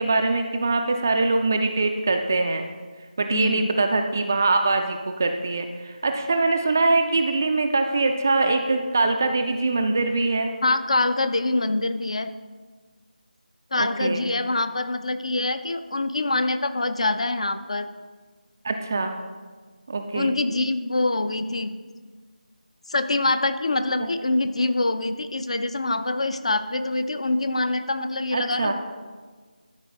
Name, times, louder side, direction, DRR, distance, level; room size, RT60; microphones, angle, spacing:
voice 1, 0.0-2.6 3.2-10.5 13.8-14.3 18.6-19.2 19.9-20.4 24.0-24.1 28.3-28.7, right 3 dB, 20° right, 5 dB, 0.3 m, -23 dB
voice 2, 3.3-3.7 10.6-12.3 13.7-17.9 20.1-21.7 22.9-28.7, left 2 dB, 40° left, 10 dB, 0.5 m, -25 dB
12.5 x 4.6 x 5.3 m, 1.5 s
figure-of-eight pair, 165°, 5 cm